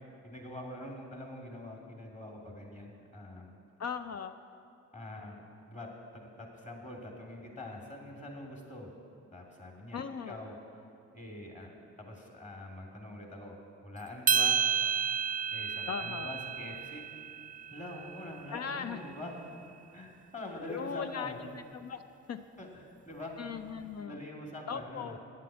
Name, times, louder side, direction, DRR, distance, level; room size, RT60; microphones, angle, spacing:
voice 1, 0.2-3.5 4.9-8.9 9.3-10.6 11.1-13.6 13.8-14.6 15.5-17.1 17.7-19.4 19.9-21.4 22.6-23.3 24.0-25.2, left 1 dB, 20° left, 0 dB, 2.7 m, -44 dB
voice 2, 3.8-4.4 9.9-10.4 15.9-16.3 18.5-19.0 20.7-22.0 22.3-22.4 23.4-24.2 24.7-25.2, left 7 dB, 45° left, 9 dB, 0.6 m, -38 dB
sound 1, 14.3-18.7, right 7 dB, 25° right, 0.4 m, -31 dB
9.4 x 7.5 x 7.6 m, 2.5 s
hypercardioid pair, 45°, 36 cm